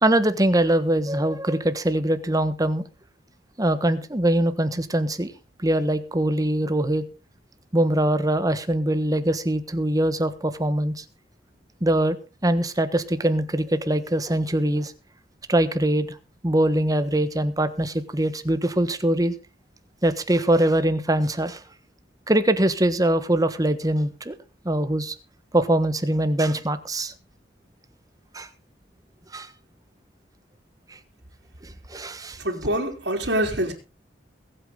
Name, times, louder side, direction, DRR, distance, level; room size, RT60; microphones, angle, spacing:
voice 1, 0.0-2.8 3.6-5.3 5.6-7.0 7.7-11.0 11.8-12.2 12.4-14.9 15.5-16.1 16.4-19.3 20.0-21.6 22.3-24.3 24.6-25.1 25.5-27.1 28.3-28.5 29.3-29.5 31.6-32.4, right 1 dB, 20° right, 1.3 m, -22 dB
voice 2, 32.4-33.7, right 1 dB, 70° right, 4.2 m, -25 dB
22.0 x 8.7 x 3.8 m
head